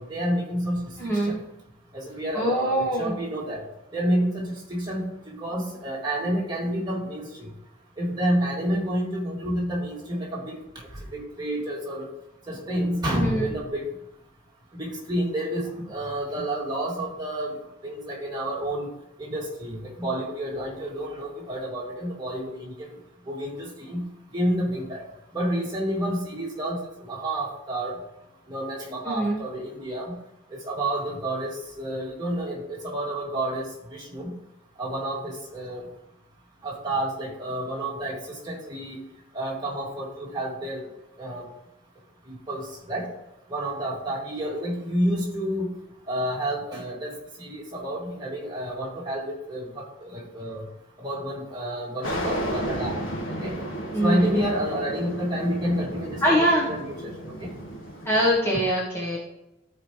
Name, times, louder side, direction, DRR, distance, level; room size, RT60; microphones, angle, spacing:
voice 1, 0.0-0.8 1.9-3.6 3.9-7.5 8.0-10.6 11.1-12.1 12.5-13.9 14.8-17.5 17.8-18.9 19.2-22.7 23.3-24.1 24.3-25.0 25.3-27.9 28.5-30.1 30.5-34.3 34.8-35.8 36.6-39.0 39.3-40.8 41.2-41.4 42.3-43.1 43.5-45.7 46.1-47.1 47.4-50.6 51.0-53.0 53.4-53.5 54.0-57.5 59.1-59.2, right 1 dB, 20° right, -5 dB, 2.5 m, -29 dB
voice 2, 1.0-1.4 2.3-3.2 13.1-13.5 29.1-29.4 53.9-54.5 56.2-56.6 58.0-59.2, equal, 10° left, -5 dB, 1.3 m, -23 dB
sound 1, 52.0-58.3, equal, 85° left, 1.9 m, -33 dB
13.5 x 5.0 x 3.3 m, 0.90 s
head